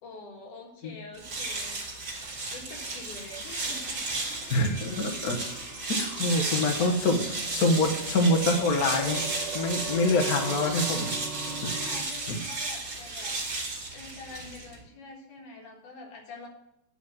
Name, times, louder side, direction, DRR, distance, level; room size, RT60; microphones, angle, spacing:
voice 1, 0.0-4.2 5.8-6.9 9.8-10.4 10.9-13.7 13.9-16.5, left 3 dB, 75° left, 0 dB, 3.3 m, -46 dB
sound 1, 1.1-14.8, right 3 dB, 40° right, 2.7 m, -34 dB
sound 2, 3.5-12.0, right 3 dB, 20° left, 2.2 m, -41 dB
voice 2, 4.5-5.4 6.0-7.2 7.5-11.1 11.6-11.7 12.3-12.4, left 2 dB, 55° left, 2 dB, 1.0 m, -25 dB
10.5 x 5.2 x 7.6 m, 0.81 s
omnidirectional pair, 3.5 m